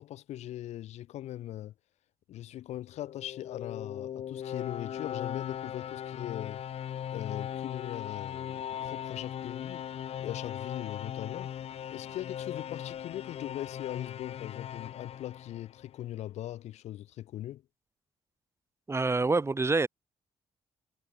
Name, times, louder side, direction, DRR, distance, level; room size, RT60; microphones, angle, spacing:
voice 1, 0.0-1.7 2.3-6.6 7.1-9.8 10.2-11.5 11.9-17.6, left 13 dB, 85° left, 5.5 m, -40 dB
sound 1, 2.9-16.0, left 9 dB, 65° left, 2.1 m, -39 dB
voice 2, 18.9-19.9, right 3 dB, 25° right, 2.7 m, -26 dB
cardioid pair, 85°, 11 cm